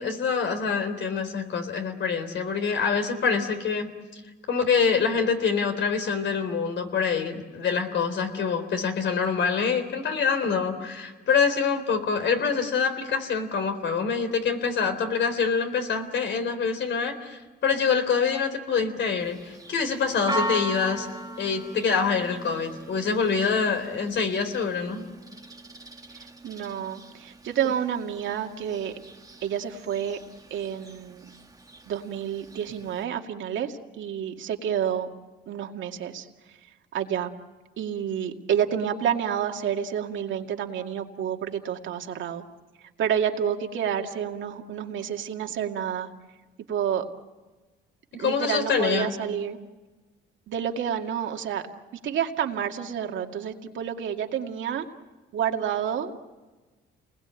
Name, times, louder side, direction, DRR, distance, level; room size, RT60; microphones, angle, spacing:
voice 1, 0.0-3.9 4.5-21.1 21.4-25.0 48.2-49.1, left 6 dB, 70° left, 7 dB, 3.8 m, -25 dB
Church bell, 19.2-33.0, right 2 dB, 20° right, 1.5 m, -39 dB
voice 2, 26.1-28.9 29.4-30.2 30.5-31.2 31.9-35.1 35.5-36.6 36.9-37.3 37.8-42.4 43.0-46.1 46.7-47.1 48.2-49.6 50.5-51.6 52.0-54.9 55.3-56.2, right 9 dB, 75° right, 4 dB, 2.2 m, -29 dB
29.0 x 20.5 x 9.1 m, 1.3 s
cardioid pair, 90°, 20 cm